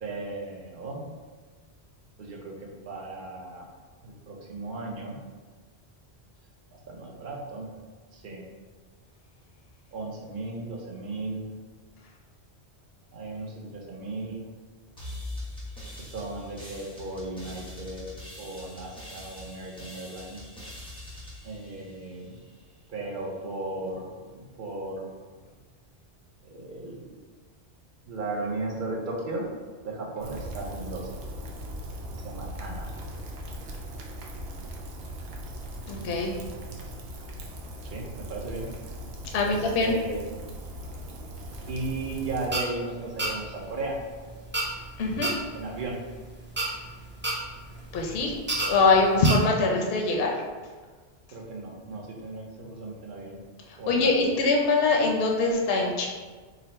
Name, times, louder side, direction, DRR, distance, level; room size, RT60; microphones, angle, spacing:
voice 1, 0.0-1.1 2.2-3.8 4.0-5.2 6.7-7.7 8.1-8.4 9.9-11.5 13.1-14.5 16.0-18.1 18.4-20.5 21.4-22.4 22.9-25.1 26.4-27.1 28.1-29.5 29.8-31.2 32.1-32.9 37.8-38.8 39.4-40.2 41.7-44.0 45.5-46.0 51.3-53.4 53.8-54.1, right 2 dB, 50° right, -1 dB, 0.8 m, -36 dB
sound 1, 15.0-22.5, left 1 dB, 5° left, 0.8 m, -42 dB
Rain, 30.2-42.5, right 1 dB, 80° right, 0.9 m, -39 dB
voice 2, 35.9-36.3 39.3-39.9 45.0-45.3 47.9-48.3 48.6-50.3 53.9-56.1, left 3 dB, 65° left, 0 dB, 0.8 m, -23 dB
sound 2, 41.5-49.3, right 2 dB, 15° right, 0.4 m, -33 dB
3.9 x 2.0 x 4.1 m, 1.4 s
omnidirectional pair, 1.2 m